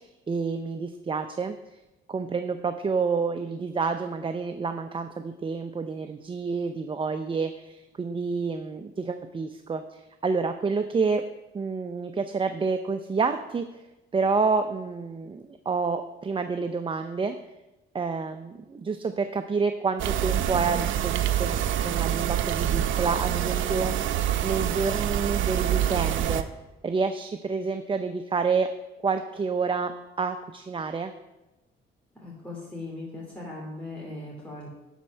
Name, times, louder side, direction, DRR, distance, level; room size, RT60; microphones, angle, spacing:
voice 1, 0.0-1.6 2.1-11.2 11.5-13.8 14.1-17.4 17.9-23.9 24.4-26.5 26.8-28.7 29.0-31.1, right 4 dB, 25° right, 8 dB, 0.5 m, -28 dB
sound 1, 20.0-26.4, right 11 dB, 75° right, 0.6 m, -26 dB
voice 2, 32.2-34.7, left 2 dB, 5° left, -5 dB, 2.6 m, -39 dB
10.0 x 4.4 x 6.3 m, 1.0 s
cardioid pair, 90°, 20 cm